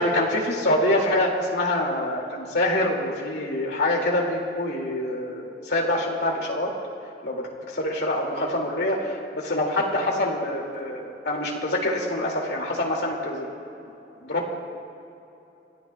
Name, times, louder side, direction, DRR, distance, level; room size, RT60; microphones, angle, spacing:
voice 1, 0.0-6.7 7.2-13.5 14.2-14.5, left 1 dB, 65° left, -1 dB, 2.3 m, -25 dB
29.0 x 15.0 x 2.3 m, 3.0 s
head